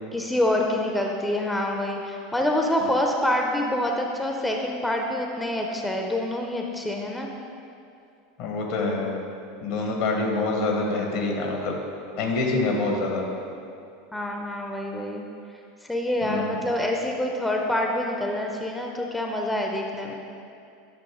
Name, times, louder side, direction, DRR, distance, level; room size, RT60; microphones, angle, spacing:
voice 1, 0.1-7.3 12.7-12.8 14.1-15.3 15.9-20.2, left 1 dB, 5° left, 1 dB, 0.5 m, -26 dB
voice 2, 8.4-9.1 9.6-11.8 12.2-13.3 16.2-16.6, left 3 dB, 60° left, 1 dB, 1.1 m, -26 dB
8.4 x 2.9 x 4.8 m, 2.5 s
figure-of-eight pair, 80°, 0 cm